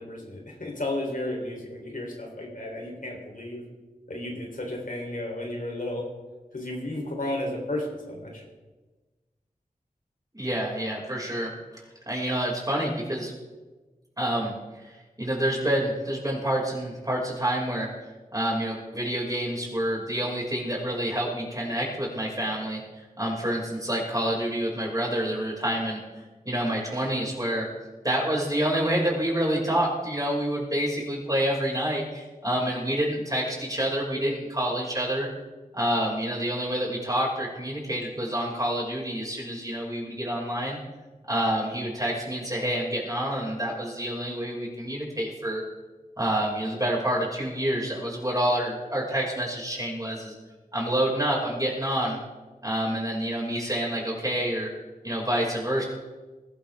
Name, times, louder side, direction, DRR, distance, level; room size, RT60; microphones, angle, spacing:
voice 1, 0.0-3.6 4.1-6.0 6.5-8.4, left 1 dB, 65° left, 0 dB, 3.7 m, -33 dB
voice 2, 10.3-11.5 12.1-13.3 14.2-17.9 18.3-26.0 26.5-27.7 28.0-35.3 35.7-40.8 41.3-45.6 46.2-50.3 50.7-52.2 52.6-54.7 55.0-55.8, right 1 dB, 25° right, -3 dB, 5.8 m, -28 dB
20.5 x 12.5 x 3.6 m, 1.2 s
wide cardioid pair, 50°, 15 cm